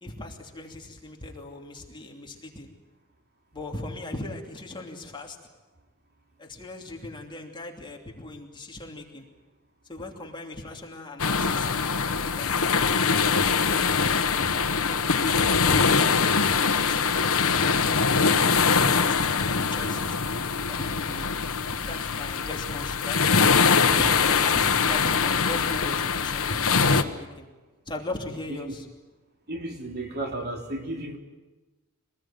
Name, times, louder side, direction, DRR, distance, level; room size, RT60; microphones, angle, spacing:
voice 1, 0.0-2.7 3.5-5.4 6.4-9.3 9.9-13.3 13.7-14.3 14.6-15.8 16.3-20.2 20.7-21.3 21.7-23.3 23.8-27.5 27.9-28.9, left 2 dB, 20° left, 1 dB, 3.0 m, -39 dB
sound 1, 11.2-27.0, left 5 dB, 70° left, 1.3 m, -23 dB
voice 2, 29.5-31.2, right 1 dB, 50° right, 2 dB, 3.4 m, -33 dB
25.5 x 19.5 x 9.2 m, 1.2 s
head